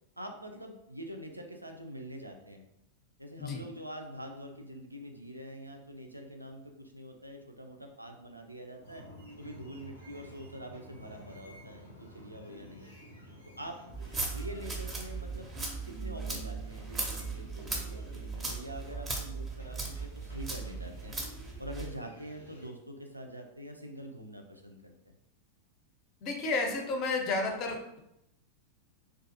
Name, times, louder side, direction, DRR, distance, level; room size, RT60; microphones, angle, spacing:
voice 1, 0.2-2.7 3.2-9.0 9.4-12.9 13.6-13.8 14.3-15.5 15.9-21.2 21.6-24.9, equal, 85° right, 4 dB, 0.3 m, -45 dB
sound 1, 8.8-22.7, equal, 90° left, 0.6 m, -52 dB
sound 2, 13.9-21.9, right 3 dB, 20° right, 0.5 m, -38 dB
voice 2, 26.2-28.0, left 3 dB, 40° left, 2 dB, 0.5 m, -31 dB
2.5 x 2.3 x 2.6 m, 0.82 s
figure-of-eight pair, 90°, 0 cm